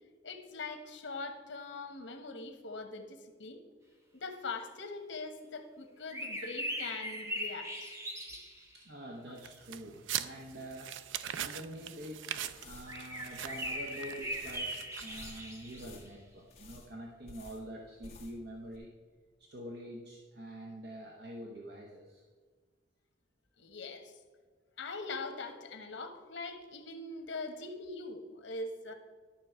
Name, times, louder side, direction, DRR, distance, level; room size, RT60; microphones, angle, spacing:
voice 1, 0.2-3.6 4.1-8.0 23.6-24.1 24.8-28.9, left 3 dB, 85° left, 6 dB, 1.2 m, -42 dB
sound 1, 6.1-8.7 12.9-16.1, equal, 15° right, 0.9 m, -40 dB
voice 2, 8.7-11.0 11.4-12.3 12.6-18.9 19.4-22.2, right 1 dB, 65° right, -1 dB, 1.0 m, -46 dB
sound 2, 9.4-15.6, right 10 dB, 85° right, 0.4 m, -42 dB
sound 3, 12.4-18.5 18.7-18.8, left 2 dB, 35° left, 1.5 m, -54 dB
12.0 x 6.2 x 4.4 m, 1.5 s
head